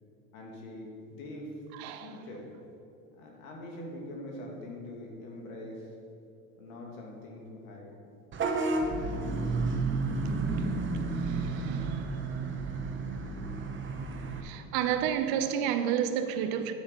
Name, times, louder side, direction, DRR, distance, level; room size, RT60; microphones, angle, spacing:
voice 1, 0.3-1.5 2.0-2.4 3.1-5.9 6.6-7.9, left 1 dB, 80° left, -1 dB, 2.4 m, -43 dB
voice 2, 1.8-2.1 11.2-12.0 14.4-16.7, right 9 dB, 60° right, 9 dB, 0.9 m, -30 dB
Vehicle horn car horn honking / Bus, 8.3-14.4, right 3 dB, 30° right, 1.1 m, -31 dB
9.6 x 7.1 x 5.3 m, 2.7 s
hypercardioid pair, 95°, 42 cm